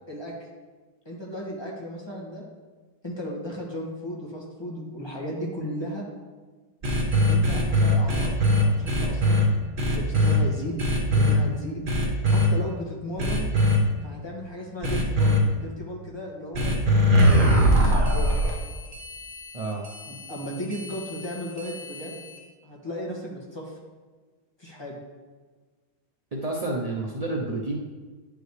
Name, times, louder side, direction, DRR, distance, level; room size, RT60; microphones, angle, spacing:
voice 1, 1.0-2.4 3.0-6.0 7.3-9.4 9.9-10.8 11.1-11.9 12.2-13.5 14.0-18.3 20.1-22.3 22.6-23.7 24.6-24.9, equal, 15° left, -4 dB, 1.4 m, -35 dB
sound 1, 6.8-9.4 9.8-10.4 10.8-11.3 11.9-12.5 13.2-13.8 14.8-15.4 16.5-22.4, equal, 40° right, 0.9 m, -22 dB
voice 2, 19.5-19.8 26.3-27.8, right 2 dB, 70° right, -2 dB, 0.3 m, -29 dB
10.0 x 5.2 x 3.2 m, 1.4 s
omnidirectional pair, 1.7 m